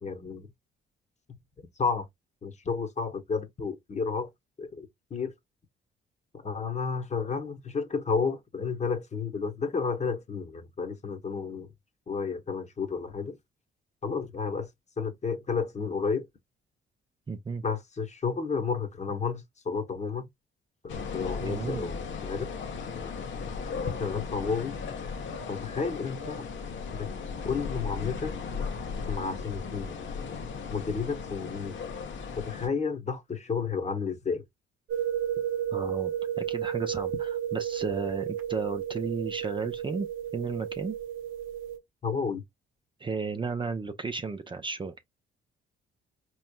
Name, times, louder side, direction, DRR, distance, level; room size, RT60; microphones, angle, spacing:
voice 1, 0.0-0.5 1.8-2.1 2.4-4.3 4.6-5.3 6.3-11.7 12.1-13.4 14.0-14.7 15.0-16.3 17.6-20.3 20.8-22.5 24.0-24.7 25.5-26.5 26.9-27.1 27.4-28.4 29.1-29.9 30.7-31.7 32.4-34.4 42.0-42.4, left 5 dB, 35° left, 1.0 m, -31 dB
voice 2, 17.3-17.6 21.4-21.9 35.7-40.1 40.3-41.0 43.0-44.9, right 4 dB, 25° right, 0.6 m, -33 dB
sound 1, 20.9-32.7, left 5 dB, 70° left, 1.0 m, -36 dB
sound 2, 34.9-41.8, right 10 dB, 85° right, 0.6 m, -32 dB
4.2 x 3.0 x 2.2 m
cardioid pair, 90°, 20 cm